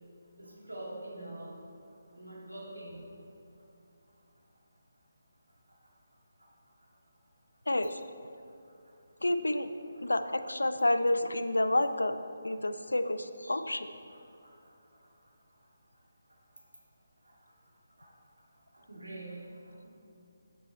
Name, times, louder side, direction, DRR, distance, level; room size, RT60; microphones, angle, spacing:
voice 1, 0.4-1.5 2.1-3.0 9.9-10.1 14.1-14.2 14.4-14.7 18.0-18.1 18.7-19.9, right 1 dB, 80° right, -5 dB, 2.1 m, -45 dB
voice 2, 7.7-8.0 9.2-9.7 10.0-12.2 12.4-13.9, left 1 dB, 75° left, 10 dB, 0.4 m, -29 dB
7.9 x 7.5 x 4.3 m, 2.5 s
figure-of-eight pair, 150°, 0 cm